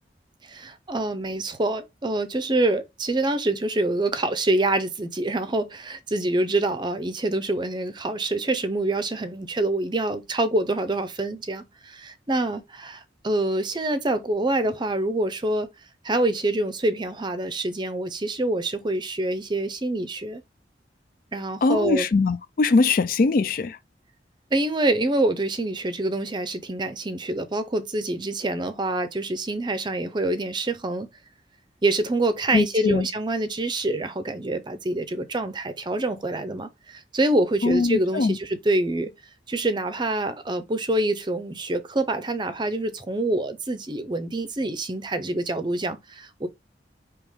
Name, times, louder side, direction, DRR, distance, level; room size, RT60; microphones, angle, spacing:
voice 1, 0.4-15.7 16.0-20.4 21.3-22.1 24.5-31.1 31.8-39.1 39.5-46.5, right 2 dB, 25° right, 0.6 m, -26 dB
voice 2, 21.6-23.8 32.5-33.1 37.6-38.4, left 3 dB, 50° left, 0.4 m, -21 dB
4.9 x 3.0 x 3.5 m
head